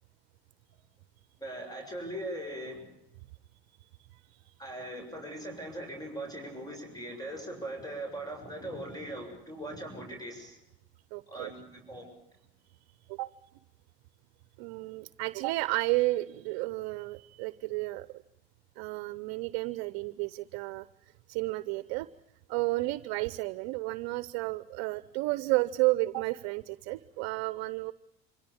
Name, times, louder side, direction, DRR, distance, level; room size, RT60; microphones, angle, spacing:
voice 1, 1.4-2.9 4.6-10.6 11.3-12.1, right 1 dB, 10° left, 3 dB, 7.5 m, -40 dB
voice 2, 11.1-11.5 13.1-13.3 14.6-18.1 18.8-20.9 21.3-22.1 22.5-27.9, right 20 dB, 70° right, 16 dB, 0.9 m, -32 dB
25.0 x 17.0 x 8.8 m, 0.83 s
supercardioid pair, 85°, 30 cm